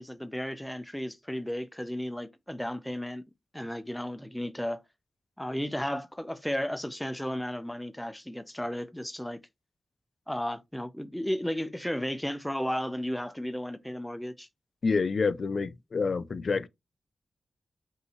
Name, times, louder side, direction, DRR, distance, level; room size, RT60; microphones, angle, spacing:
voice 1, 0.0-3.2 3.5-4.8 5.4-9.4 10.3-14.5, equal, 5° left, 0.5 m, -34 dB
voice 2, 14.8-16.7, left 4 dB, 60° left, 0.4 m, -28 dB
5.5 x 2.7 x 3.0 m
wide cardioid pair, 110°, 0 cm